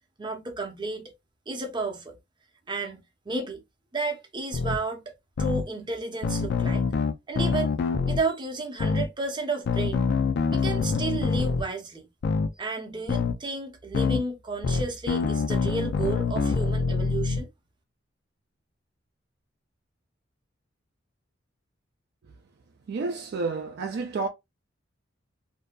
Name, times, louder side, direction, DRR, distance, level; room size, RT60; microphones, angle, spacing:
voice 1, 0.2-1.1 1.5-2.1 2.7-3.0 3.3-3.6 3.9-6.9 7.3-7.7 8.0-10.0 10.5-12.1 12.6-17.5, right 3 dB, 25° right, 0.7 m, -32 dB
sound 1, 4.5-4.8 5.4-5.6 6.2-8.2 8.8-9.1 9.7-11.6 12.2-12.5 13.1-13.4 13.9-14.2 14.6-17.4, left 5 dB, 60° left, 0.3 m, -25 dB
voice 2, 22.9-24.3, right 4 dB, 55° right, 0.3 m, -30 dB
2.6 x 2.2 x 2.2 m
head